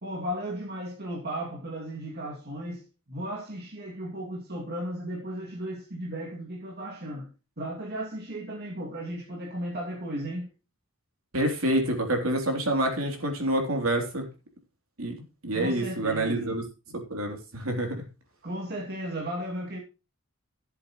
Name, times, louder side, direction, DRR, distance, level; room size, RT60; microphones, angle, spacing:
voice 1, 0.0-7.3 7.6-10.5 15.5-16.6 18.4-19.8, right 1 dB, 50° right, 2.6 m, -35 dB
voice 2, 11.3-14.3 15.0-16.6 16.9-18.0, right 1 dB, 70° right, 3.5 m, -27 dB
16.0 x 8.0 x 3.1 m
head